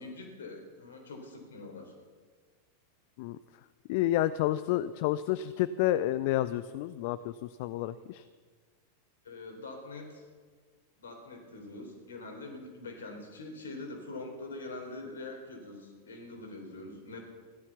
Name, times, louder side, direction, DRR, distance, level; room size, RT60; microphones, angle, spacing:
voice 1, 0.0-1.9 9.2-10.2 11.0-17.2, left 2 dB, 65° left, 4 dB, 3.6 m, -44 dB
voice 2, 3.9-8.2, left 13 dB, 50° left, 15 dB, 0.5 m, -30 dB
16.5 x 12.5 x 7.0 m, 1.5 s
figure-of-eight pair, 90°, 0 cm